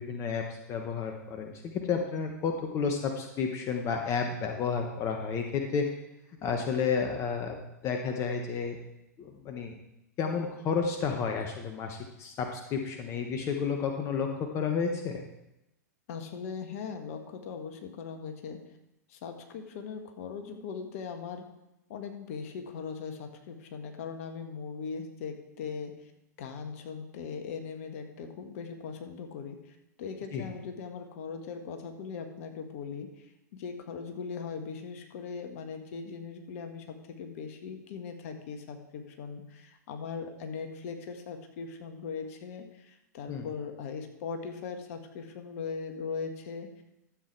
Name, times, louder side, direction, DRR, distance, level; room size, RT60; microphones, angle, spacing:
voice 1, 0.0-5.9 6.4-7.6 7.8-8.8 9.2-9.7 10.2-15.2 30.3-30.4 43.3-43.5, left 5 dB, 30° left, 3 dB, 1.2 m, -31 dB
voice 2, 16.1-18.6 19.1-21.4 21.9-26.1 26.4-46.8, left 5 dB, 55° left, 5 dB, 1.5 m, -40 dB
12.5 x 7.7 x 4.7 m, 0.88 s
figure-of-eight pair, 100°, 9 cm